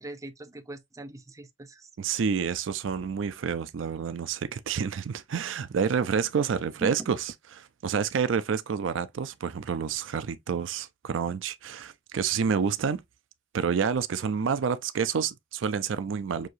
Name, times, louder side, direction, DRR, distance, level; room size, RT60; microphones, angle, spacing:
voice 1, 0.0-1.9 6.8-7.1, right 1 dB, 15° right, 0.6 m, -41 dB
voice 2, 2.0-13.0 13.5-16.5, right 6 dB, 75° right, 0.4 m, -29 dB
6.2 x 2.7 x 2.5 m
head